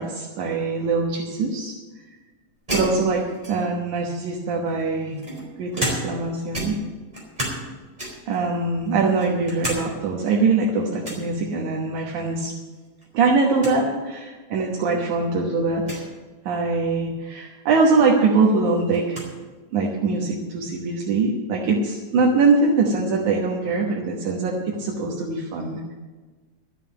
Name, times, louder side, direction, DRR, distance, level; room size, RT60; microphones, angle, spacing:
voice 1, 0.0-1.8 2.7-5.2 5.6-6.8 8.3-12.5 13.1-16.1 16.5-19.2 19.7-25.9, right 4 dB, 80° right, -1 dB, 2.7 m, -22 dB
sound 1, 2.7-3.9 4.7-6.3 6.5-7.7 8.0-8.4 8.9-9.8 10.2-10.3 11.0-11.3 12.7-13.1 13.3-13.4 13.6-13.8 14.6-14.7 15.8-16.1 17.7-17.8 18.2-19.3, right 1 dB, 15° right, 4.3 m, -31 dB
13.0 x 7.5 x 9.4 m, 1.3 s
omnidirectional pair, 3.4 m